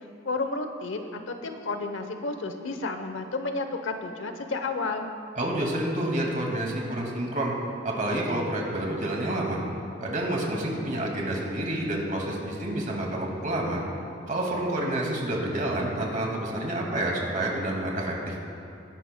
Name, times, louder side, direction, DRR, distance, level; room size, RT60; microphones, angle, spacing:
voice 1, 0.2-5.1, left 3 dB, 85° left, 7 dB, 0.8 m, -31 dB
voice 2, 5.4-7.5 7.8-9.6 10.0-13.8 14.3-18.3, right 1 dB, 45° right, -1 dB, 2.1 m, -28 dB
20.0 x 11.5 x 2.2 m, 2.6 s
head